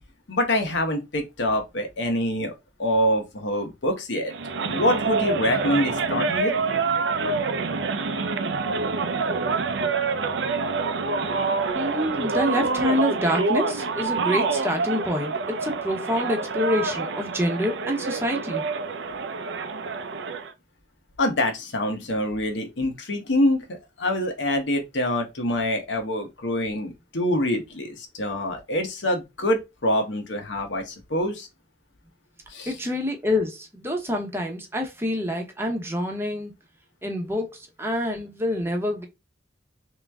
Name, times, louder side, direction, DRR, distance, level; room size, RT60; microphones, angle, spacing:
voice 1, 0.3-2.5 2.8-4.3 4.6-6.5 21.2-31.5 32.5-32.7, left 1 dB, 85° left, 1.1 m, -25 dB
sound 1, 4.3-20.5, right 4 dB, 75° right, 0.5 m, -27 dB
voice 2, 11.7-18.6 32.7-36.5 37.0-39.0, left 1 dB, 15° right, 0.8 m, -27 dB
3.6 x 3.1 x 3.5 m
head